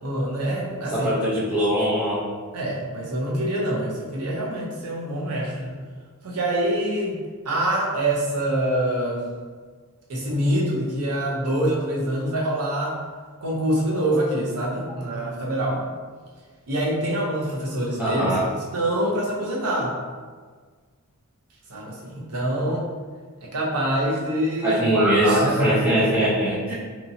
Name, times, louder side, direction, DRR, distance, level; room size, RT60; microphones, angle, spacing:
voice 1, 0.0-1.1 2.5-5.7 6.2-9.2 10.1-13.0 13.4-15.9 16.7-18.2 18.5-19.9 21.7-22.8 23.4-26.1, right 1 dB, 80° right, -3 dB, 0.7 m, -25 dB
voice 2, 0.9-2.2 18.0-18.4 24.6-26.7, equal, 5° right, -12 dB, 0.7 m, -21 dB
2.9 x 2.6 x 2.7 m, 1.5 s
head